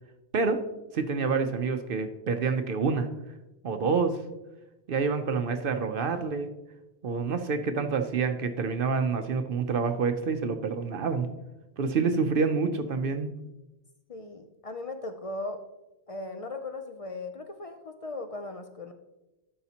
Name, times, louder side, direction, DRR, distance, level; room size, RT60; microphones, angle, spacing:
voice 1, 0.9-3.1 3.6-4.2 4.9-6.5 7.0-11.3 11.8-13.3, right 5 dB, 60° right, 7 dB, 0.7 m, -27 dB
voice 2, 14.1-15.6 16.1-18.9, left 2 dB, 45° left, 7 dB, 0.5 m, -38 dB
12.0 x 5.7 x 2.8 m, 1.0 s
omnidirectional pair, 1.1 m